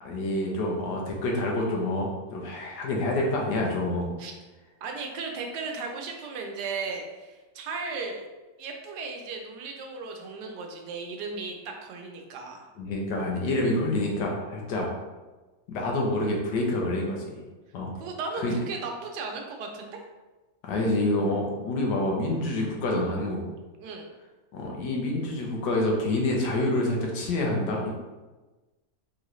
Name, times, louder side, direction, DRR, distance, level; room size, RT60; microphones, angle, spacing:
voice 1, 0.0-4.1 12.8-14.9 15.7-17.3 17.7-17.9 18.4-18.5 20.6-23.5 24.5-27.9, left 1 dB, 90° left, -1 dB, 1.5 m, -27 dB
voice 2, 4.8-8.2 8.6-12.7 18.0-20.0 23.8-24.1, right 4 dB, 80° right, 2 dB, 1.3 m, -36 dB
4.6 x 3.1 x 3.1 m, 1.2 s
omnidirectional pair, 1.8 m